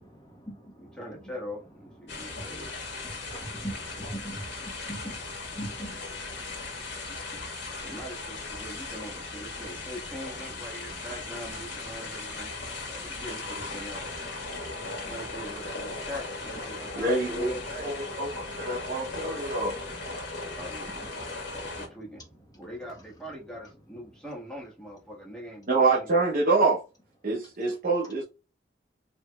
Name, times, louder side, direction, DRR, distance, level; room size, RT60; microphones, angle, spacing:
voice 1, 0.0-1.3 2.0-8.0 8.6-9.9 10.6-11.1 11.7-16.1 16.7-17.9 18.3-22.0 22.5-22.7, right 1 dB, 20° left, 1.2 m, -46 dB
voice 2, 1.0-2.7 7.8-14.1 15.1-17.9 20.6-22.2 22.6-26.1 26.4-26.5, equal, 5° left, 1.5 m, -42 dB
sound 1, 2.1-21.9, left 3 dB, 85° left, 1.5 m, -38 dB
voice 3, 17.0-19.7 25.7-26.8 27.2-28.2, right 3 dB, 50° right, 0.8 m, -26 dB
4.8 x 2.9 x 2.3 m
head